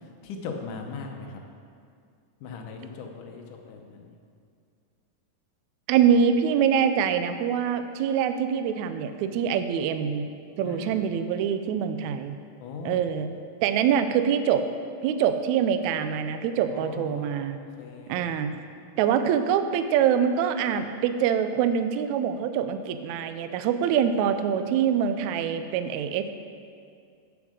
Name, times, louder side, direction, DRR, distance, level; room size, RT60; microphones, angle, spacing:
voice 1, 0.2-1.4 2.4-4.1 10.6-11.0 12.6-13.0 16.7-18.3, left 5 dB, 75° left, 3 dB, 2.3 m, -39 dB
voice 2, 5.9-10.3 10.6-12.3 12.8-13.3 13.6-14.6 15.0-17.6 18.1-18.5 19.0-26.3, right 8 dB, 85° right, 9 dB, 1.6 m, -24 dB
8.6 x 7.1 x 6.4 m, 2.3 s
omnidirectional pair, 3.8 m